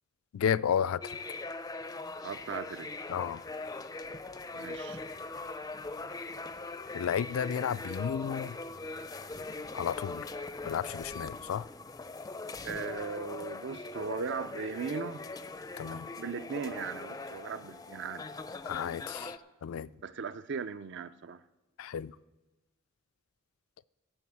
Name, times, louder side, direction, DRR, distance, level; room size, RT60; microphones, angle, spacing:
voice 1, 0.3-1.2 3.1-3.4 6.9-8.6 9.7-10.3 10.7-11.7 15.8-16.1 18.7-19.4 19.6-19.9 21.8-22.2, left 8 dB, 80° left, 0.3 m, -32 dB
sound 1, 1.0-19.4, left 3 dB, 20° left, 0.4 m, -41 dB
voice 2, 2.2-2.9 4.5-5.0 12.6-15.3 16.2-18.3 20.0-21.4, right 5 dB, 60° right, 0.5 m, -38 dB
14.0 x 6.2 x 8.5 m
head